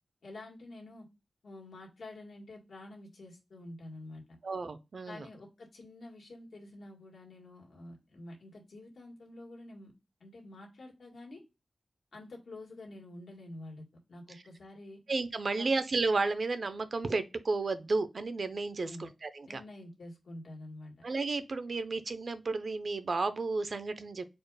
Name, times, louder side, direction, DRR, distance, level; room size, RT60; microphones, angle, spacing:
voice 1, 0.2-1.1 1.4-4.4 5.1-9.9 10.2-11.4 12.1-15.0 15.6-15.7 18.8-19.1 19.5-20.9, left 2 dB, 90° left, 1.7 m, -48 dB
voice 2, 4.4-5.3 15.1-19.6 21.0-24.3, right 3 dB, 55° right, 0.5 m, -32 dB
4.3 x 2.4 x 4.7 m
wide cardioid pair, 120°, 0 cm